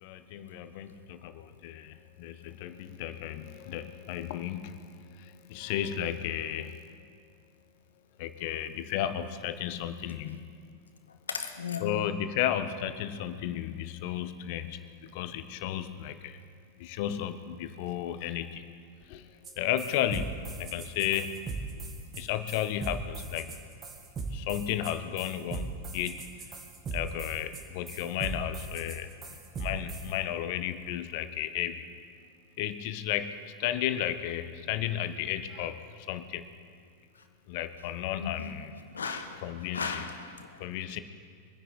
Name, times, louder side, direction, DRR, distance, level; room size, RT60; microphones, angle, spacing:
voice 1, 0.0-6.8 8.2-10.4 11.8-16.4 16.8-18.6 19.1-19.3 19.6-21.3 22.1-23.5 24.3-26.4 26.9-29.1 29.6-31.9 32.6-33.3 33.6-36.5 37.5-38.7 39.4-40.0 40.6-41.0, left 11 dB, 45° left, 11 dB, 0.9 m, -33 dB
voice 2, 11.3-12.0 38.2-38.5 38.9-39.4 39.7-40.5, left 5 dB, 70° left, 8 dB, 1.3 m, -36 dB
sound 1, 19.4-19.5 19.8-30.1, right 3 dB, 25° right, 1.9 m, -38 dB
24.0 x 10.0 x 4.6 m, 2.1 s
figure-of-eight pair, 90°, 0 cm